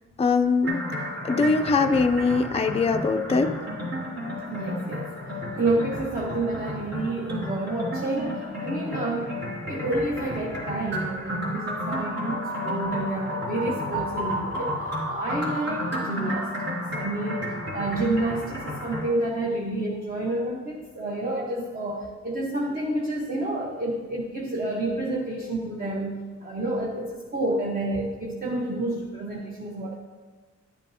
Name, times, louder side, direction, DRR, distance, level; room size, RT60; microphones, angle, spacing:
voice 1, 0.2-0.8 1.2-3.6, left 4 dB, 20° left, 6 dB, 0.4 m, -22 dB
sound 1, 0.6-19.0, equal, 60° right, 2.6 m, -32 dB
voice 2, 4.5-5.1 5.5-14.8 15.1-29.9, right 2 dB, 30° right, -3 dB, 1.1 m, -29 dB
12.0 x 11.0 x 2.7 m, 1.4 s
wide cardioid pair, 180°, 29 cm